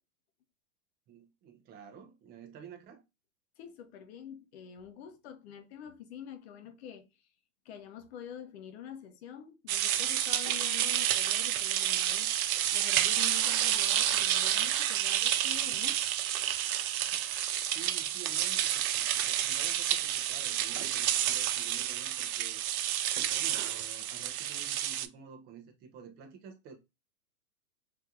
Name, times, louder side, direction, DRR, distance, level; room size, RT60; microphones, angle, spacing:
voice 1, 1.1-3.0 17.6-22.6 23.2-26.8, right 7 dB, 20° right, 0.7 m, -51 dB
voice 2, 3.6-7.0 7.6-12.3 12.7-16.2 17.1-17.2, left 9 dB, 45° left, 0.8 m, -46 dB
sound 1, 9.7-25.1, right 11 dB, 70° right, 0.6 m, -30 dB
3.2 x 2.9 x 2.4 m
hypercardioid pair, 130°, 44 cm